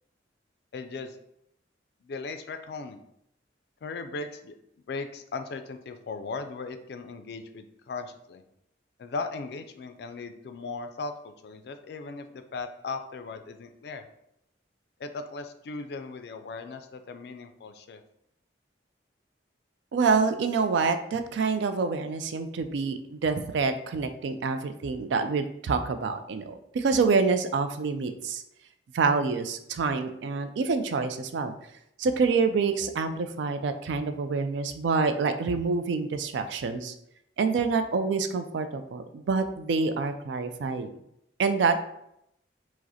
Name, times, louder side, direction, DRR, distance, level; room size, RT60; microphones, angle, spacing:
voice 1, 0.7-1.2 2.0-3.0 3.8-4.5 4.9-8.4 9.0-14.0 15.0-18.0, left 4 dB, 60° left, 8 dB, 0.3 m, -38 dB
voice 2, 19.9-28.4 28.9-31.5 32.0-36.9 37.4-40.9 41.4-41.8, right 4 dB, 75° right, 9 dB, 0.3 m, -27 dB
4.8 x 2.0 x 2.7 m, 0.78 s
head